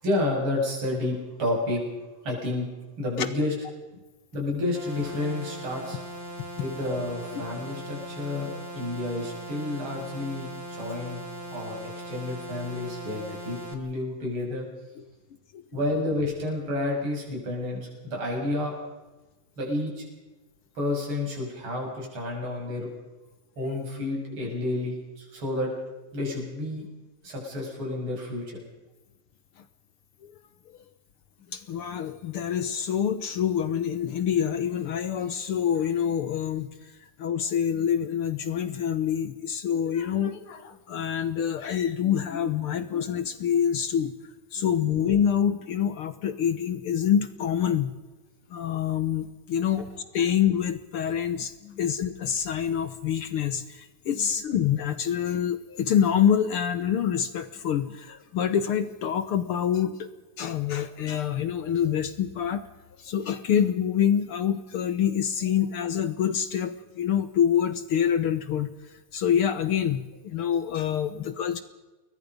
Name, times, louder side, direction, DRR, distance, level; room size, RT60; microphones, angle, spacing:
voice 1, 0.0-1.8 2.2-2.7 3.0-3.5 4.3-6.0 6.6-8.5 8.7-11.2 11.5-14.7 15.7-18.8 19.6-20.0 20.8-22.9 23.6-25.7 26.1-26.8 27.2-28.6 51.6-51.8 71.1-71.2, left 2 dB, 40° right, -1 dB, 7.5 m, -30 dB
sound 1, 4.7-13.7, right 1 dB, 20° right, 2.8 m, -39 dB
voice 2, 31.5-36.7 37.2-44.1 44.5-47.9 48.5-49.9 50.1-60.1 60.4-62.6 63.0-68.7 69.1-71.6, left 9 dB, 65° left, 12 dB, 1.4 m, -26 dB
29.5 x 21.5 x 5.3 m, 1.1 s
omnidirectional pair, 3.6 m